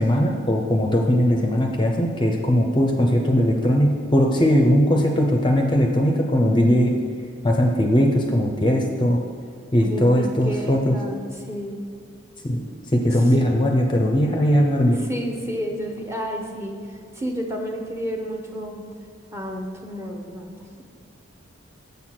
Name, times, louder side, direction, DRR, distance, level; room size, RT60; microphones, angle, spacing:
voice 1, 0.0-6.9 7.4-9.2 9.7-10.9 12.4-12.6 12.9-15.0, equal, 25° left, 2 dB, 0.6 m, -19 dB
voice 2, 9.8-11.8 13.1-13.2 15.0-18.8 19.3-20.8, equal, 15° right, 1 dB, 0.8 m, -31 dB
6.9 x 6.3 x 5.8 m, 2.1 s
head